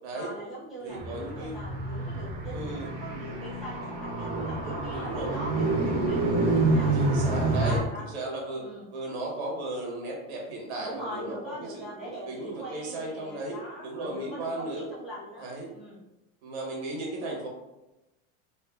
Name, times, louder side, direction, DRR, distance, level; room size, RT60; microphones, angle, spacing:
voice 1, 0.1-6.9 7.5-8.1 8.6-8.9 10.8-16.0, equal, ahead, -9 dB, 0.3 m, -41 dB
voice 2, 0.8-1.6 2.5-2.9 4.9-5.4 6.9-7.8 8.1-8.6 8.9-14.9 15.4-15.7 16.4-17.5, right 2 dB, 85° right, -1 dB, 1.1 m, -35 dB
Car, 0.9-7.8, right 2 dB, 50° right, 0.9 m, -28 dB
3.4 x 2.5 x 2.3 m, 0.97 s
supercardioid pair, 160°, 33 cm